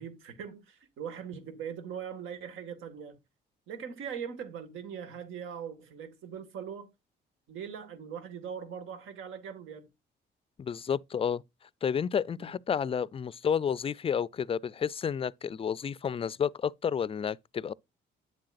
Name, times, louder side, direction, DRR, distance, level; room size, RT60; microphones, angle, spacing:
voice 1, 0.0-3.2 3.7-6.9 7.5-9.9 12.4-12.5, right 7 dB, 85° right, 1.7 m, -41 dB
voice 2, 10.6-11.4 11.8-17.7, left 7 dB, 30° left, 0.4 m, -31 dB
9.4 x 7.6 x 2.4 m
cardioid pair, 90°, 20 cm